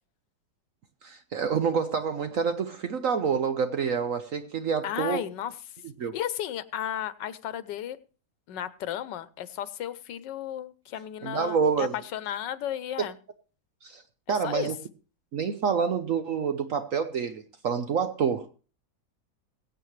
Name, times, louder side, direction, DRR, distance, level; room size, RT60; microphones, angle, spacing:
voice 1, 1.0-5.2 6.0-6.1 11.2-11.9 13.8-14.0 14.3-14.8 15.3-18.5, right 6 dB, 60° right, 1.0 m, -27 dB
voice 2, 4.8-5.5 6.1-8.0 8.5-13.2 14.4-14.7, left 11 dB, 90° left, 1.4 m, -34 dB
22.0 x 8.2 x 3.2 m
omnidirectional pair, 1.9 m